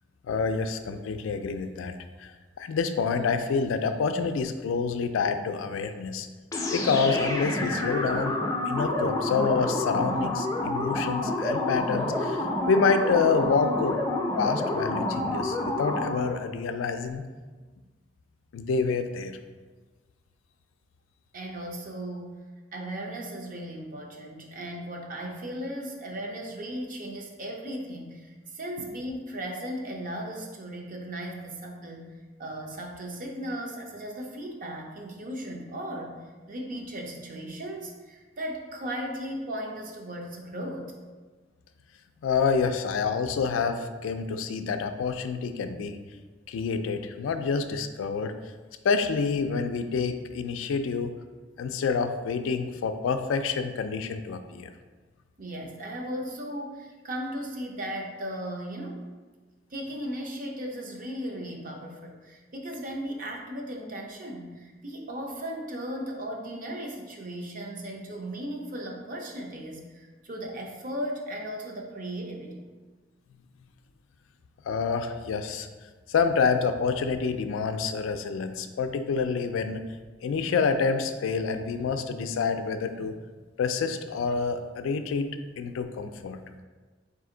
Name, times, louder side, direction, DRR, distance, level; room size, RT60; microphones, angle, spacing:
voice 1, 0.3-1.9 2.2-6.3 6.7-8.4 8.7-14.0 14.4-17.2 18.5-19.4 42.2-46.0 46.5-48.3 48.8-51.1 51.6-54.7 74.6-75.7 76.1-79.8 80.2-83.1 83.6-85.3 85.6-86.4, left 5 dB, 85° left, 8 dB, 0.3 m, -27 dB
sound 1, 6.5-16.4, left 1 dB, 20° left, 0.4 m, -29 dB
voice 2, 21.3-22.4 22.7-32.1 32.4-36.2 36.5-40.9 55.4-59.1 59.7-72.7, equal, 45° right, 1 dB, 0.6 m, -36 dB
4.2 x 2.6 x 3.8 m, 1.3 s
head